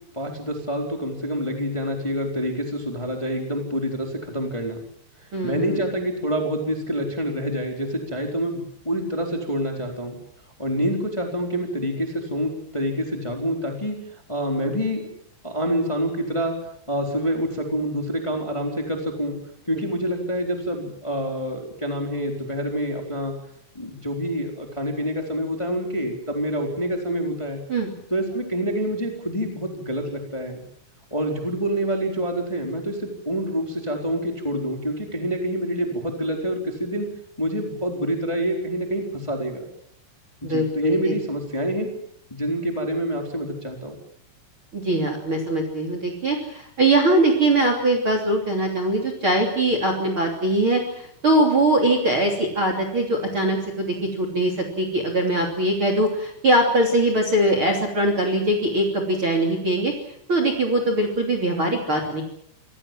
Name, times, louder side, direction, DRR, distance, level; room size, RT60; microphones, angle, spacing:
voice 1, 0.1-4.8 5.4-10.2 10.6-13.9 14.3-15.0 15.4-16.5 16.9-19.3 19.6-23.3 23.7-27.6 28.1-30.6 31.1-33.0 33.2-37.1 37.4-39.7 40.4-41.9 42.3-43.9, equal, 5° left, 2 dB, 3.3 m, -27 dB
voice 2, 5.3-5.8 27.7-27.9 40.4-41.1 44.7-59.9 60.3-62.2, right 1 dB, 30° right, 4 dB, 3.3 m, -22 dB
26.5 x 19.0 x 7.6 m, 0.73 s
omnidirectional pair, 5.4 m